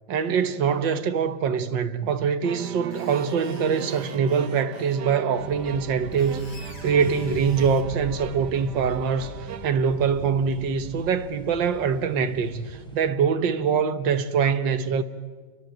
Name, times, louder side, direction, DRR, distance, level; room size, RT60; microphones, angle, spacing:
voice 1, 0.1-15.0, right 6 dB, 85° right, 1.9 m, -24 dB
sound 1, 2.4-9.7, right 10 dB, 70° right, 1.5 m, -38 dB
Screech, 2.5-5.0 5.9-7.9, left 3 dB, 75° left, 3.3 m, -47 dB
sound 2, 5.4-13.1, equal, ahead, 5.1 m, -41 dB
29.0 x 23.5 x 7.9 m
omnidirectional pair, 1.9 m